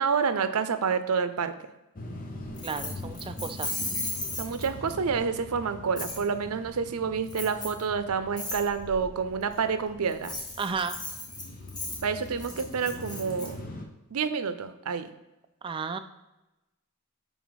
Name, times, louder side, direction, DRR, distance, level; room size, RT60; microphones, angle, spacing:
voice 1, 0.0-1.5 4.4-10.3 12.0-13.6 14.1-15.1, right 6 dB, 90° right, 11 dB, 0.6 m, -28 dB
sound 1, 2.0-13.9, left 1 dB, 40° left, 0.8 m, -43 dB
Keys jangling, 2.6-4.9 6.0-6.2 7.3-7.8 8.4-8.6 10.1-13.5, left 2 dB, 20° left, 1.3 m, -35 dB
voice 2, 2.6-3.7 10.6-11.0 15.6-16.0, right 5 dB, 25° right, 8 dB, 0.3 m, -33 dB
9.4 x 3.9 x 4.0 m, 1.0 s
head